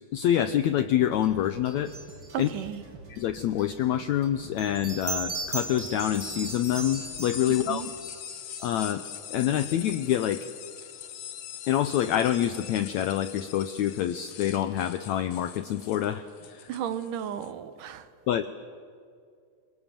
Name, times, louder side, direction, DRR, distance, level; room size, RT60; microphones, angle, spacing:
voice 1, 0.1-1.9 2.4-2.5 3.1-7.8 8.6-9.0 9.3-10.5 11.7-16.7 18.3-18.5, left 11 dB, 80° left, 1.6 m, -26 dB
sound 1, 1.0-8.2, right 3 dB, 40° right, 3.6 m, -48 dB
sound 2, 1.9-2.5 4.6-9.1, right 3 dB, 20° right, 3.9 m, -38 dB
voice 2, 2.3-2.8 7.7-7.9 16.7-18.1, right 9 dB, 70° right, 2.4 m, -34 dB
sound 3, 5.6-17.5, left 10 dB, 60° left, 2.3 m, -42 dB
27.0 x 22.0 x 7.5 m
omnidirectional pair, 4.1 m